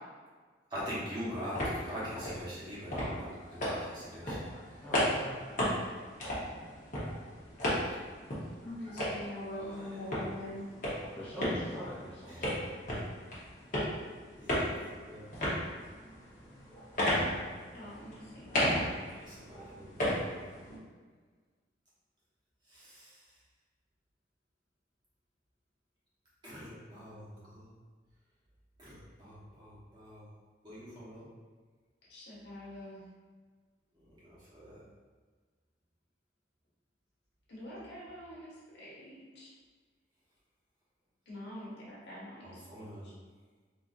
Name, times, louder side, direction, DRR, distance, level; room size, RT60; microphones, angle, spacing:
voice 1, 0.7-4.7 9.5-9.6 12.3-12.6 14.4-15.3 19.1-20.7 22.7-23.2 26.4-27.7 28.8-30.2 30.6-31.3 34.0-34.8 42.4-43.2, equal, 25° right, -9 dB, 1.0 m, -44 dB
sound 1, 1.1-20.8, equal, 45° left, 0.9 m, -35 dB
voice 2, 4.8-5.6 11.0-12.7, equal, 5° left, -10 dB, 0.6 m, -43 dB
voice 3, 8.6-10.7 11.5-11.8 17.7-18.6 32.1-33.1 37.5-39.5 41.3-42.6 43.0-43.1, left 1 dB, 75° left, -7 dB, 1.2 m, -44 dB
4.0 x 2.6 x 2.5 m, 1.5 s
head